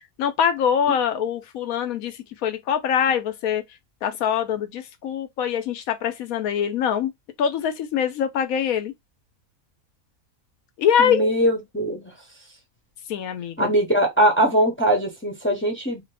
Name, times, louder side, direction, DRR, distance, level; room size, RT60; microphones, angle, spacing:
voice 1, 0.2-3.6 4.0-7.1 7.4-8.9 10.8-11.3 13.1-13.7, left 8 dB, 80° left, 1.1 m, -23 dB
voice 2, 11.0-12.1 13.6-16.0, right 1 dB, 10° left, 0.6 m, -21 dB
2.8 x 2.5 x 3.2 m
omnidirectional pair, 1.5 m